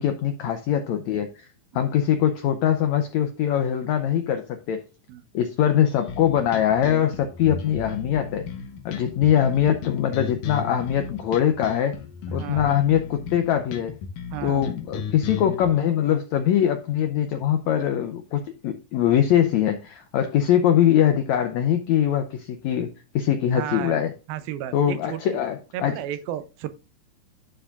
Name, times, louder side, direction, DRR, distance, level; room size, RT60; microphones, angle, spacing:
voice 1, 0.0-1.5 1.7-4.8 5.3-8.5 8.8-12.0 12.3-14.0 14.4-22.9 23.1-24.1 24.7-26.0, left 10 dB, 90° left, 1.6 m, -22 dB
sound 1, 6.1-15.7, left 6 dB, 70° left, 2.5 m, -35 dB
voice 2, 12.3-12.8 14.3-14.7 17.6-17.9 23.5-24.0 24.3-25.2 25.7-26.7, right 11 dB, 85° right, 2.6 m, -33 dB
11.5 x 7.0 x 2.5 m
omnidirectional pair, 4.1 m